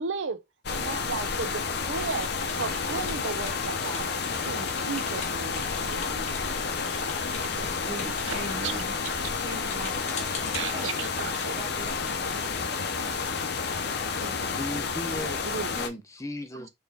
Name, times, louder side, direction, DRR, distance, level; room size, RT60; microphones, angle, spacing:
voice 1, 0.0-4.1 4.4-6.4 7.2-7.7 8.2-8.3 8.6-8.7 9.0-9.1 10.5-11.6 12.7-12.8 14.1-14.9 15.2-15.7, right 5 dB, 75° right, 0.6 m, -36 dB
sound 1, 0.6-15.9, left 5 dB, 55° left, 0.6 m, -30 dB
sound 2, 1.9-13.5, left 3 dB, 35° left, 1.3 m, -43 dB
voice 2, 7.8-8.9 9.4-11.1 11.6-13.7, right 2 dB, 30° right, 1.1 m, -41 dB
voice 3, 14.4-15.4 15.7-16.7, left 1 dB, 15° left, 0.7 m, -36 dB
4.3 x 3.4 x 3.5 m
head